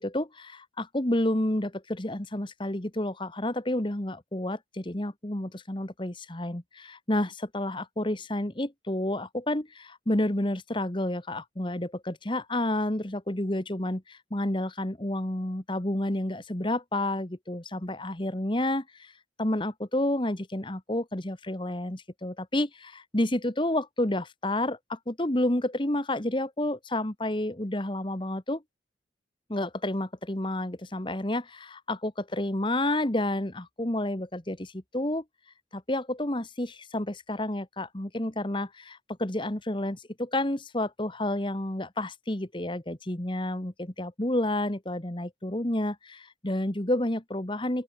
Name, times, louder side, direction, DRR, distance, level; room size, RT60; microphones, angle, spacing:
voice 1, 0.0-19.1 19.4-28.6 29.5-35.2 35.7-47.8, left 1 dB, 25° left, 1.5 m, -30 dB
open air
head